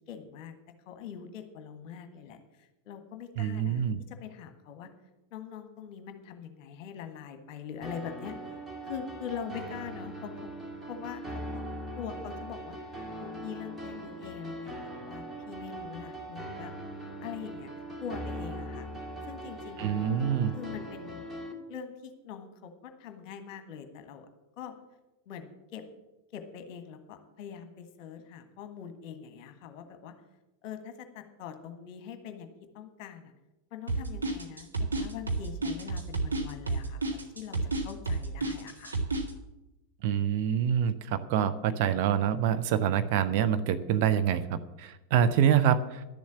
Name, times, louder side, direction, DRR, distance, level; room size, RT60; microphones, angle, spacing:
voice 1, 0.1-0.6 0.9-4.9 5.3-8.3 8.8-10.5 10.9-11.6 12.0-12.8 13.2-14.8 15.0-16.7 17.2-17.7 18.0-18.9 19.2-20.0 20.5-21.3 21.7-24.3 24.6-24.7 25.3-25.8 26.3-30.1 30.6-33.3 33.7-39.0, left 8 dB, 40° left, 8 dB, 1.5 m, -43 dB
voice 2, 3.4-4.0 19.8-20.5 40.0-46.0, right 9 dB, 45° right, 11 dB, 0.7 m, -26 dB
sound 1, 7.8-21.5, right 1 dB, 5° right, 1.8 m, -40 dB
sound 2, 33.9-39.3, right 3 dB, 80° right, 1.7 m, -30 dB
11.5 x 7.2 x 8.4 m, 0.99 s
figure-of-eight pair, 90°, 0 cm